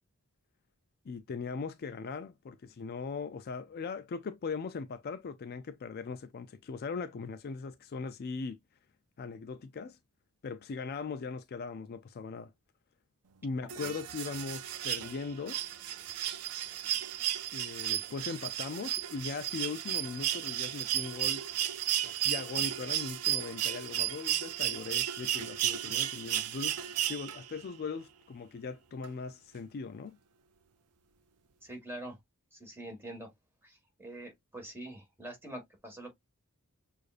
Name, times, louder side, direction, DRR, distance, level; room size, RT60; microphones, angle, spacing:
voice 1, 1.1-8.6 9.2-10.0 10.4-12.5 13.4-15.6 17.5-21.5 22.0-30.2, left 4 dB, 45° left, 0.4 m, -39 dB
sound 1, 13.7-27.6 29.0-29.1, right 12 dB, 80° right, 0.5 m, -34 dB
voice 2, 31.6-32.2 32.5-33.3 33.6-36.1, right 1 dB, 10° right, 1.6 m, -45 dB
6.5 x 2.5 x 2.4 m
head